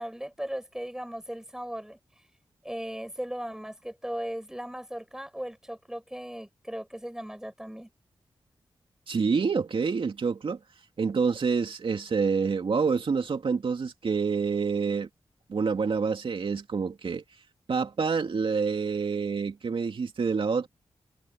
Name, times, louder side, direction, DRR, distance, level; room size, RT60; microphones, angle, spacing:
voice 1, 0.0-2.0 2.6-7.9, equal, 5° right, 6.8 m, -37 dB
voice 2, 9.1-10.6 11.0-15.1 15.5-17.2 17.7-20.7, right 5 dB, 65° right, 2.8 m, -27 dB
cardioid pair, 65°, 10 cm